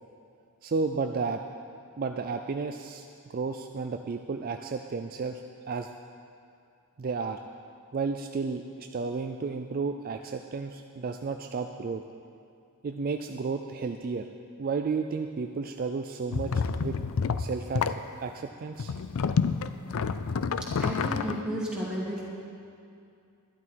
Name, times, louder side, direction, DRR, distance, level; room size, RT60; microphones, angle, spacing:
voice 1, 0.6-1.4 2.0-5.9 7.0-7.4 7.9-12.0 12.8-14.3 14.6-16.5 16.8-17.0 17.4-18.9, right 4 dB, 40° right, 5 dB, 0.4 m, -32 dB
sound 1, 16.3-18.0 18.8-21.4, left 5 dB, 65° left, 0.4 m, -28 dB
voice 2, 20.8-22.3, equal, 5° right, -8 dB, 2.7 m, -32 dB
12.0 x 12.0 x 4.6 m, 2.4 s
head